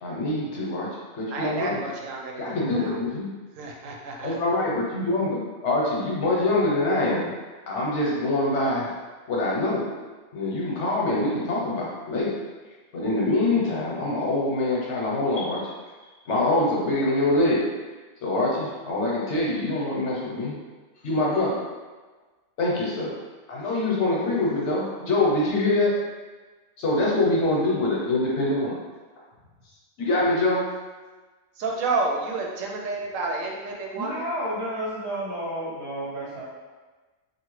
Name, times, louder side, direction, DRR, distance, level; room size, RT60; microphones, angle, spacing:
voice 1, 0.0-1.8 2.4-3.3 4.2-7.3 7.7-8.9 9.3-9.9 10.3-12.3 12.9-15.7 16.3-17.7 18.2-20.6 21.0-21.6 22.6-23.1 23.5-26.0 26.8-28.8 30.0-30.7, left 2 dB, 65° left, -4 dB, 1.0 m, -24 dB
voice 2, 1.3-3.0 3.6-4.3 31.6-34.2, right 3 dB, 90° right, -1 dB, 1.0 m, -30 dB
voice 3, 33.9-36.4, right 1 dB, 60° right, -10 dB, 1.0 m, -31 dB
2.8 x 2.4 x 3.1 m, 1.3 s
omnidirectional pair, 1.3 m